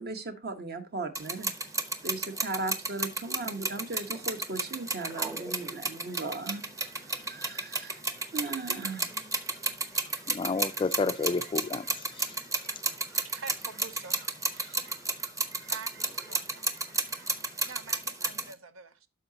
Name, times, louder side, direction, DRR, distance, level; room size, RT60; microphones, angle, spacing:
voice 1, 0.0-1.5 2.0-8.0 8.3-9.1, right 3 dB, 50° right, 1.1 m, -37 dB
sound 1, 1.1-18.5, right 3 dB, 15° right, 0.8 m, -32 dB
Fowl / Chirp tweet, 3.2-17.7, right 3 dB, 65° right, 2.5 m, -57 dB
voice 2, 10.3-12.3, left 4 dB, 25° left, 0.3 m, -31 dB
voice 3, 13.2-14.1 15.7-16.7 17.7-19.1, right 5 dB, 80° right, 0.8 m, -45 dB
12.5 x 4.8 x 2.8 m
head